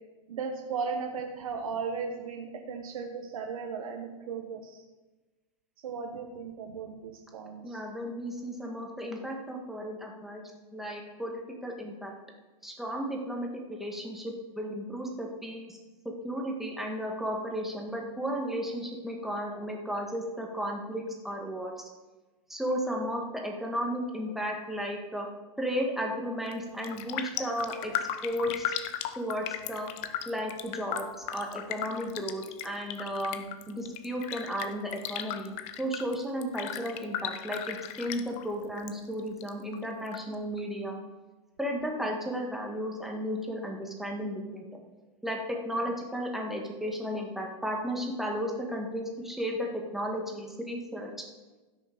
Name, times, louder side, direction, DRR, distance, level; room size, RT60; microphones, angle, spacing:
voice 1, 0.3-4.8 5.8-7.8, right 5 dB, 85° right, 2 dB, 1.5 m, -36 dB
voice 2, 7.6-10.4 10.7-12.1 12.6-15.8 16.1-21.7 22.5-25.3 25.6-27.9 28.2-28.7 29.2-29.9 30.3-31.1 31.3-41.0 41.6-44.6 45.2-51.1, equal, ahead, 0 dB, 1.8 m, -34 dB
Raindrop, 26.3-26.6 26.8-38.9 39.2-40.2 40.6-40.7, left 10 dB, 40° left, 0.8 m, -37 dB
16.0 x 6.5 x 5.2 m, 1.2 s
hypercardioid pair, 135°, 18 cm